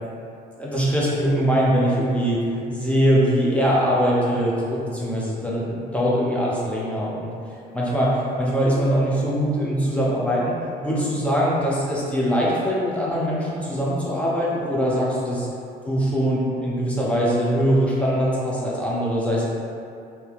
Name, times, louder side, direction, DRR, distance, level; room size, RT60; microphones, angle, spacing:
voice 1, 0.6-7.3 7.7-10.5 10.8-15.5 15.9-19.5, equal, 5° left, -6 dB, 0.7 m, -22 dB
3.3 x 2.8 x 2.9 m, 2.5 s
cardioid pair, 110°, 17 cm